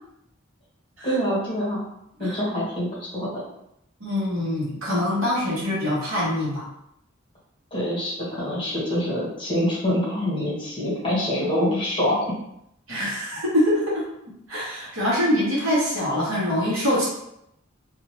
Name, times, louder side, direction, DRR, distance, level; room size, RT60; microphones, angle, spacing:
voice 1, 1.0-1.8 2.2-3.4 7.7-12.1, equal, 25° left, -7 dB, 1.3 m, -25 dB
voice 2, 4.0-6.6 12.9-14.0 14.5-17.1, left 1 dB, 70° right, -6 dB, 1.3 m, -24 dB
2.7 x 2.7 x 3.0 m, 0.79 s
head